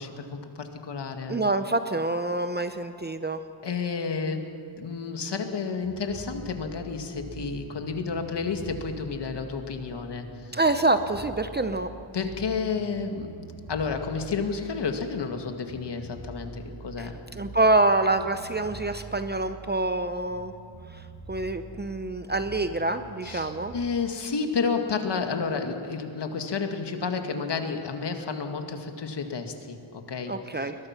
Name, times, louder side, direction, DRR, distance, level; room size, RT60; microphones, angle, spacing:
voice 1, 0.0-1.4 3.6-10.5 12.1-13.4 13.7-17.2 23.2-30.7, left 5 dB, 55° left, 5 dB, 1.9 m, -31 dB
voice 2, 1.3-3.4 10.5-11.9 17.0-17.1 17.4-20.5 20.9-21.0 21.3-23.7 30.3-30.8, right 2 dB, 20° right, 9 dB, 0.7 m, -26 dB
sound 1, 5.8-23.8, right 3 dB, 55° right, 4.8 m, -45 dB
21.5 x 20.5 x 5.9 m, 2.5 s
wide cardioid pair, 120°, 49 cm